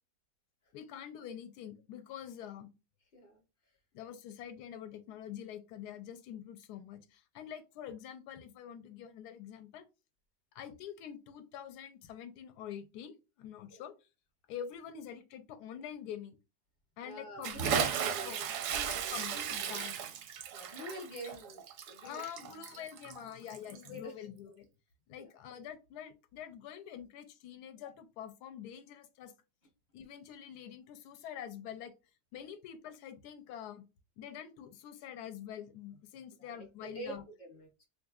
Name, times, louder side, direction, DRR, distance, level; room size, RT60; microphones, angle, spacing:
voice 1, 0.7-2.7 3.9-9.9 10.5-13.9 14.5-16.4 17.0-18.4 18.7-20.0 21.2-21.3 22.0-24.7 25.1-29.3 29.9-31.9 32.3-33.8 34.2-37.2, left 9 dB, 80° left, 1.1 m, -46 dB
voice 2, 17.0-18.5 20.5-22.2 22.7-22.8 23.7-24.1 25.2-25.3 36.4-37.9, equal, 45° left, 0.6 m, -46 dB
Bathtub (filling or washing) / Splash splatter, 17.4-24.0, right 8 dB, 70° right, 0.8 m, -36 dB
3.6 x 3.1 x 2.3 m
omnidirectional pair, 1.7 m